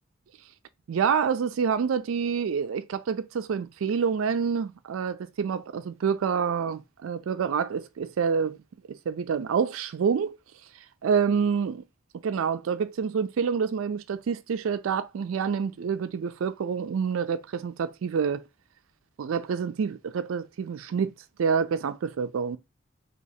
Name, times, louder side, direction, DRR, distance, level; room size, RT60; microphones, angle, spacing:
voice 1, 0.9-8.6 8.9-10.4 11.0-11.8 12.2-18.4 19.2-21.1 21.4-22.6, right 6 dB, 70° right, 0.4 m, -27 dB
6.2 x 2.9 x 2.7 m
head